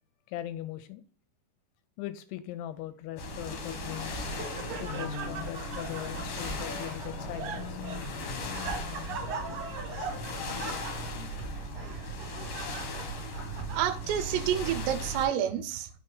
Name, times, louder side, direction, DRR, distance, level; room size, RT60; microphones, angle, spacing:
voice 1, 0.3-1.0 2.0-4.3 4.8-7.8, left 13 dB, 85° left, 2.5 m, -40 dB
sound 1, 3.2-15.3, left 1 dB, 65° left, 2.3 m, -37 dB
Laughter, 3.7-14.3, right 5 dB, 65° right, 1.7 m, -41 dB
sound 2, 4.1-5.1 6.4-7.4 8.6-9.6 11.4-12.2 13.6-14.4, right 2 dB, 10° left, 0.9 m, -45 dB
voice 2, 13.7-16.0, right 10 dB, 85° right, 2.7 m, -29 dB
5.7 x 4.3 x 3.8 m
omnidirectional pair, 4.8 m